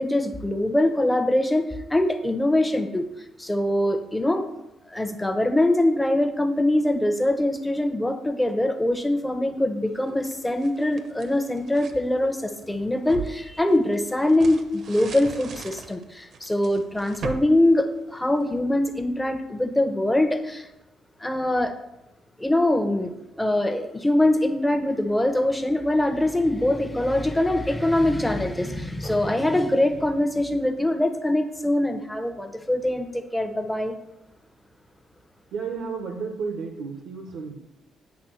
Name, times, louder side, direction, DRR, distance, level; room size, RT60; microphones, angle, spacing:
voice 1, 0.0-3.1 3.4-4.4 4.9-20.7 21.2-21.8 22.4-33.9, left 1 dB, 10° left, 7 dB, 0.9 m, -23 dB
sound 1, 10.0-12.0 12.5-18.6, right 5 dB, 55° right, 0.8 m, -40 dB
voice 2, 35.5-37.6, right 5 dB, 85° right, 4 dB, 0.9 m, -32 dB
8.4 x 3.6 x 6.2 m, 0.92 s
cardioid pair, 90°, 0 cm